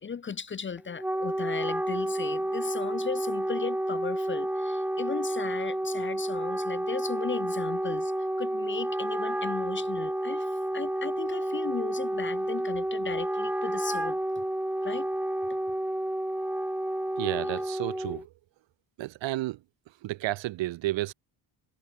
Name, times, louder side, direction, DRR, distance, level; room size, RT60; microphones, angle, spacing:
voice 1, 0.0-8.1 8.4-14.2 14.8-15.1, left 6 dB, 25° left, 0.6 m, -36 dB
Wind instrument woodwind instrument, 0.8-18.2, right 1 dB, 5° right, 0.9 m, -30 dB
voice 2, 17.2-18.3 19.0-19.6 20.0-21.1, right 16 dB, 60° right, 0.8 m, -31 dB
cardioid pair, 120°, 50 cm